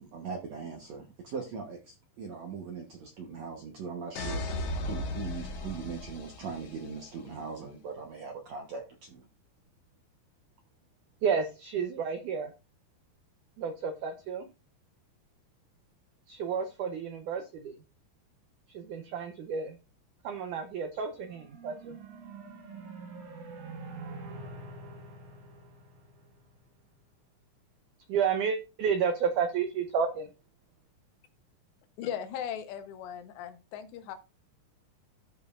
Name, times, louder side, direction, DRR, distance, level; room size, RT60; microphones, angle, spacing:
voice 1, 0.0-4.4 4.8-9.3, right 5 dB, 75° right, 2 dB, 1.6 m, -40 dB
sound 1, 4.2-7.0, left 1 dB, 55° left, 2.4 m, -36 dB
voice 2, 11.2-12.5 13.6-14.5 16.3-17.8 18.7-19.8 20.2-22.0 28.1-30.3, right 6 dB, 90° right, 7 dB, 1.7 m, -31 dB
sound 2, 21.2-26.7, right 3 dB, 55° right, 2.7 m, -45 dB
voice 3, 32.0-34.2, left 9 dB, 85° left, 8 dB, 3.3 m, -38 dB
14.0 x 5.2 x 2.5 m, 0.29 s
omnidirectional pair, 4.8 m